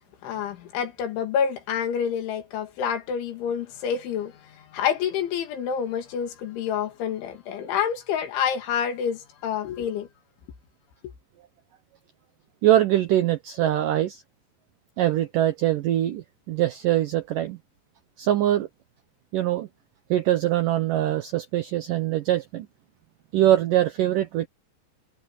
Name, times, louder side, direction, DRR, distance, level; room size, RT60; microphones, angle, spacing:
voice 1, 0.2-10.1, left 8 dB, 90° left, 4.8 m, -28 dB
voice 2, 12.6-14.2 15.0-17.6 18.2-18.7 19.3-19.7 20.1-22.7 23.3-24.5, right 13 dB, 85° right, 1.9 m, -23 dB
omnidirectional pair, 5.2 m